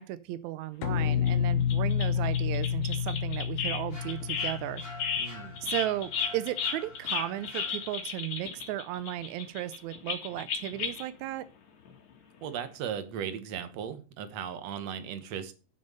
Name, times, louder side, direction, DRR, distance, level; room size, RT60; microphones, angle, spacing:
voice 1, 0.0-4.8 5.6-11.4, right 14 dB, 85° right, 14 dB, 1.6 m, -35 dB
sound 1, 0.8-6.1, left 8 dB, 70° left, 2.1 m, -30 dB
sound 2, 1.3-1.4 1.7-3.8 4.1-11.1 11.9-12.0 12.2-12.3, left 6 dB, 55° left, 3.3 m, -34 dB
sound 3, 3.9-8.2, left 2 dB, 15° left, 3.1 m, -47 dB
voice 2, 5.2-5.6 12.4-15.5, right 8 dB, 60° right, 10 dB, 2.0 m, -37 dB
11.0 x 6.9 x 5.4 m, 0.35 s
omnidirectional pair, 4.0 m